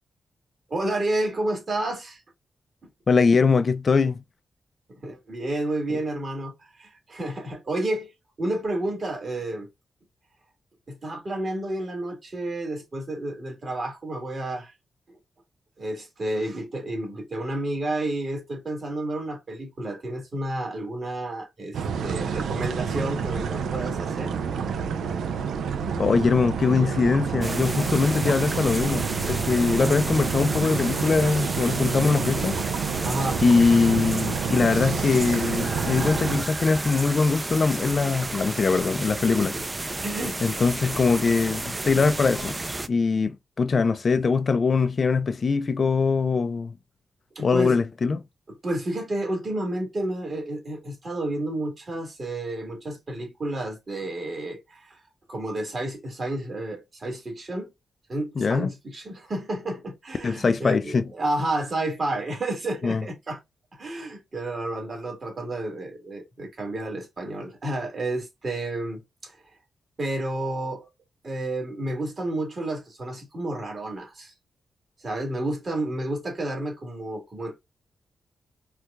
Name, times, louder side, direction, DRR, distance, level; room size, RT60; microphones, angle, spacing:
voice 1, 0.7-2.2 4.9-8.1 8.4-9.7 10.9-14.7 15.8-24.3 33.0-33.4 39.3-39.6 40.0-40.4 47.4-47.8 48.5-55.0 55.3-57.7 58.1-63.4 63.8-69.4 70.0-70.9 71.2-74.3 75.0-77.6, right 1 dB, 45° right, 1.7 m, -31 dB
voice 2, 3.1-4.2 26.0-32.6 33.4-39.5 40.4-42.6 42.9-46.7 47.4-48.2 58.4-58.7 60.2-61.0 62.8-63.0, left 4 dB, 50° left, 0.4 m, -22 dB
sound 1, 21.7-36.4, right 6 dB, 90° right, 0.4 m, -29 dB
sound 2, 27.4-42.9, right 2 dB, 25° right, 0.4 m, -32 dB
4.4 x 2.3 x 2.3 m
cardioid pair, 85°, 0 cm